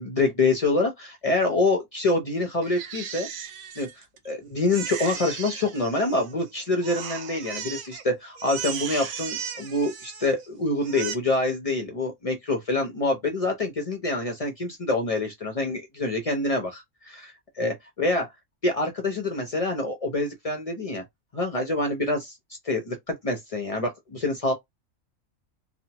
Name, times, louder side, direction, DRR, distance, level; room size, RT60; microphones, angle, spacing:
voice 1, 0.0-3.3 3.8-3.9 4.2-18.3 18.6-21.0 21.3-22.4 22.6-24.5, left 2 dB, 55° left, 0.4 m, -26 dB
Crying sobbing, 2.6-4.3 4.7-6.5 6.8-8.0 8.4-10.5 10.8-11.1, right 8 dB, 85° right, 1.1 m, -36 dB
3.0 x 2.0 x 2.8 m
omnidirectional pair, 1.4 m